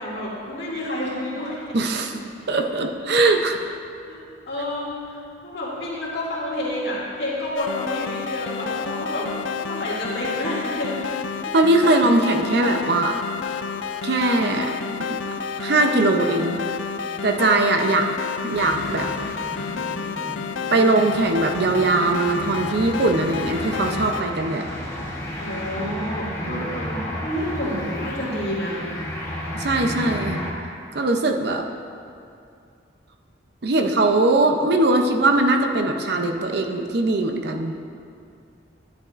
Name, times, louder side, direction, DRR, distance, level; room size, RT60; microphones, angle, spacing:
voice 1, 0.0-1.6 2.1-2.2 2.7-2.8 4.1-4.2 4.5-9.3 9.6-11.5 25.4-28.8, left 1 dB, 60° left, -7 dB, 2.3 m, -29 dB
voice 2, 1.7-2.2 2.5-3.7 11.5-13.2 14.0-14.7 15.0-15.2 15.6-16.6 17.2-18.1 18.4-19.1 20.7-24.7 26.3-26.6 29.5-30.4 30.9-31.7 33.6-37.7, right 2 dB, 60° right, 4 dB, 0.6 m, -21 dB
sound 1, 7.6-24.2, left 6 dB, 80° left, 0.4 m, -30 dB
sound 2, 18.5-30.5, equal, 15° left, 1.0 m, -32 dB
11.0 x 10.0 x 2.5 m, 2.4 s
head